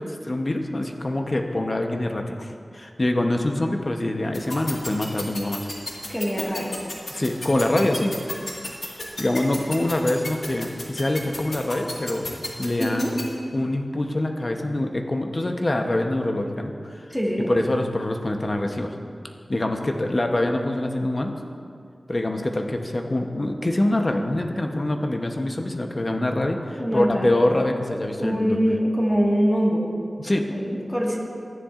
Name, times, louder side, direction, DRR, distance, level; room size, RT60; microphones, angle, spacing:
voice 1, 0.0-5.7 7.1-8.1 9.2-12.3 12.6-13.0 13.5-17.1 17.5-18.9 19.5-21.4 22.1-28.6 30.2-30.5, left 1 dB, 40° left, 4 dB, 0.8 m, -25 dB
sound 1, 4.3-13.2, left 2 dB, 65° left, 1.7 m, -31 dB
voice 2, 6.1-6.8 12.8-13.1 17.1-17.5 26.8-27.4 28.2-29.9 30.5-31.2, equal, 10° left, -3 dB, 1.7 m, -23 dB
14.0 x 10.0 x 2.5 m, 2.3 s
wide cardioid pair, 65°, 0 cm